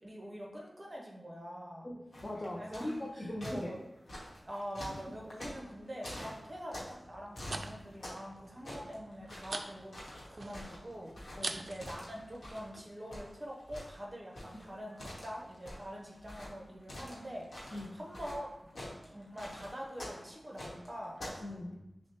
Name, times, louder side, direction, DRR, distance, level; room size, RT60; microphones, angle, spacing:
voice 1, 0.0-1.9 2.6-3.8 4.4-10.0 10.3-18.7 19.1-21.2, equal, 30° right, -2 dB, 0.7 m, -45 dB
voice 2, 1.8-3.7 11.4-11.7 14.5-14.8 17.7-18.0 21.4-21.8, left 1 dB, 40° left, -2 dB, 0.5 m, -41 dB
sound 1, 2.1-3.1 3.4-7.0 7.3-8.3 8.6-12.8 13.1-21.5, left 1 dB, 90° left, 0.9 m, -46 dB
sound 2, 7.0-12.8, right 2 dB, 60° right, 0.3 m, -46 dB
6.1 x 2.1 x 2.9 m, 0.95 s
wide cardioid pair, 80°, 0 cm